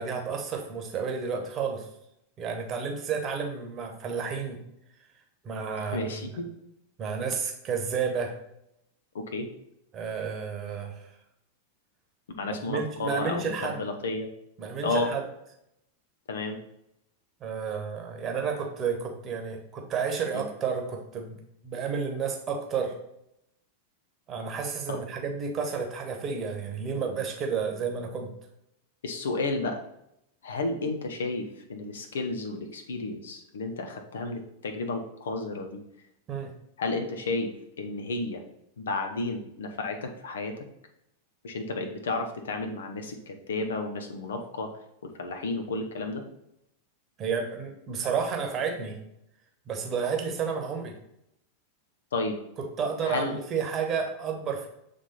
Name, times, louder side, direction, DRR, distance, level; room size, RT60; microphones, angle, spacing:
voice 1, 0.0-1.9 2.4-4.6 5.4-6.1 7.0-8.3 9.9-11.1 12.7-13.8 14.6-15.2 17.4-21.4 21.6-22.9 24.3-28.3 36.3-36.5 47.2-49.0 49.7-50.9 52.6-54.7, right 6 dB, 30° right, 3 dB, 1.1 m, -31 dB
voice 2, 5.8-6.5 9.1-9.5 12.4-14.3 14.8-15.1 16.3-16.6 20.3-20.4 24.9-25.0 29.0-29.8 30.4-35.8 36.8-37.5 37.8-38.4 38.8-40.5 41.4-44.7 45.0-46.2 52.1-52.4 53.1-53.3, left 3 dB, 65° left, 4 dB, 0.9 m, -32 dB
7.2 x 3.4 x 4.1 m, 0.80 s
figure-of-eight pair, 90°, 0 cm